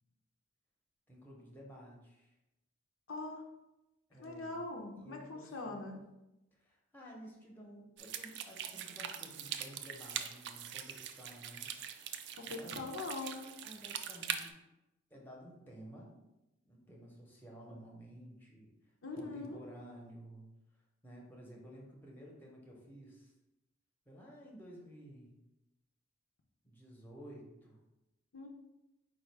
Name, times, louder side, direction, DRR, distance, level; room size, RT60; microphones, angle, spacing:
voice 1, 1.1-2.3 4.1-4.6 5.0-6.0 6.5-11.7 12.5-12.9 13.6-14.6 15.1-16.2 16.6-18.7 19.1-20.5 21.0-23.3 24.1-25.3 26.6-27.8, equal, 10° left, -2 dB, 0.8 m, -53 dB
voice 2, 3.1-3.4 4.2-6.0 12.3-13.4 19.0-19.6 28.3-28.5, left 3 dB, 80° left, 1 dB, 0.7 m, -42 dB
sound 1, 8.0-14.5, right 9 dB, 55° right, 0.3 m, -42 dB
4.6 x 2.4 x 4.6 m, 0.95 s
head